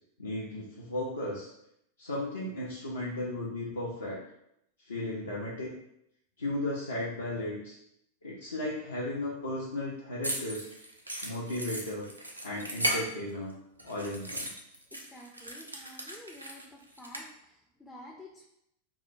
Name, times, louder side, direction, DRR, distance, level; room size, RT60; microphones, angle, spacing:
voice 1, 0.2-1.5 2.0-4.2 4.9-5.7 6.4-7.8 8.2-10.6 11.2-12.1 12.4-13.5 13.8-14.5, left 1 dB, 75° left, -6 dB, 0.4 m, -35 dB
sound 1, 10.2-13.5 13.8-17.2, right 1 dB, 85° right, 0.3 m, -36 dB
voice 2, 14.9-18.5, left 1 dB, 10° left, -2 dB, 0.4 m, -50 dB
2.7 x 2.1 x 2.6 m, 0.78 s
figure-of-eight pair, 90°, 0 cm